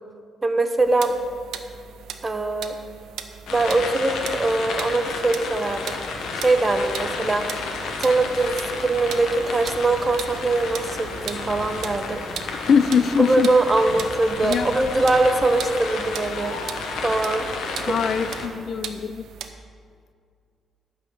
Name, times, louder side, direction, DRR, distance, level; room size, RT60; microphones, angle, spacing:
voice 1, 0.4-1.1 2.2-2.7 3.5-6.0 6.4-7.7 8.0-12.2 13.2-16.6 17.0-17.5 17.8-17.9, right 2 dB, 25° right, 7 dB, 0.9 m, -22 dB
sound 1, 0.8-19.5, right 8 dB, 80° right, 0.7 m, -39 dB
sound 2, 3.5-18.5, left 4 dB, 75° left, 1.2 m, -32 dB
voice 2, 12.6-13.5 14.4-14.7 17.9-19.3, left 6 dB, 60° left, 13 dB, 0.4 m, -21 dB
12.5 x 4.3 x 8.1 m, 2.2 s
cardioid pair, 90°, 0 cm